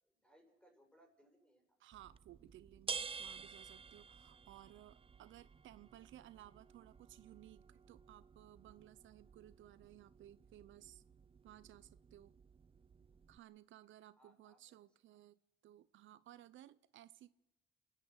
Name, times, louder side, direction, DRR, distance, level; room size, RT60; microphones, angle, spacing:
voice 1, 0.0-1.8 14.2-14.8 15.0-15.2, right 1 dB, 5° left, 3 dB, 6.8 m, -69 dB
voice 2, 1.8-11.0 11.4-12.3 13.3-17.3, right 13 dB, 75° right, 16 dB, 0.6 m, -59 dB
sound 1, 1.9-13.4, right 6 dB, 30° right, 0.6 m, -52 dB
30.0 x 11.0 x 8.1 m, 0.95 s
cardioid pair, 90°, 20 cm